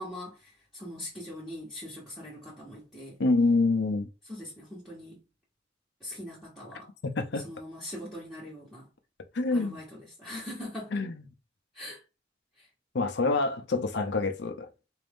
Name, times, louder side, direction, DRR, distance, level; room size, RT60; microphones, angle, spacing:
voice 1, 0.0-3.2 4.3-5.2 6.0-6.9 7.4-8.9 9.5-9.8 10.2-10.9 11.7-12.0 12.6-12.7, left 1 dB, ahead, 1.1 m, -41 dB
voice 2, 3.2-4.1 7.0-7.4 9.3-9.8 10.9-11.2 12.9-14.7, left 3 dB, 60° left, 0.6 m, -26 dB
4.1 x 2.6 x 3.5 m
head